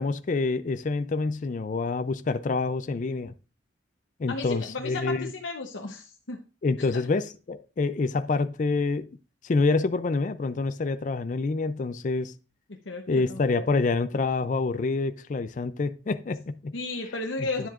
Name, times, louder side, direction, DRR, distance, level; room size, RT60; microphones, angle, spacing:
voice 1, 0.0-3.3 4.2-5.3 6.6-9.1 9.4-12.3 13.1-16.7, left 3 dB, 45° left, 0.4 m, -27 dB
voice 2, 4.3-6.4 6.9-7.0 12.8-13.7 16.7-17.7, left 3 dB, 90° left, 0.9 m, -34 dB
9.9 x 7.4 x 2.4 m
head